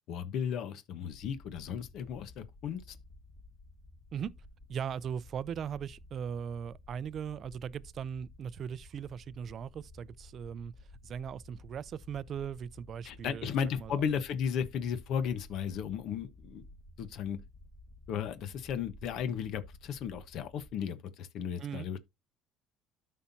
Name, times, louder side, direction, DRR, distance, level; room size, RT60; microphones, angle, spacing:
voice 1, 0.1-3.0 13.0-16.6 17.0-17.4 18.1-22.0, left 7 dB, 60° left, 1.1 m, -35 dB
sound 1, 1.1-20.7, left 2 dB, 35° left, 2.1 m, -54 dB
voice 2, 4.7-10.7 11.0-14.0 21.6-21.9, right 8 dB, 40° right, 0.5 m, -39 dB
13.0 x 5.6 x 2.7 m
cardioid pair, 135°, 0 cm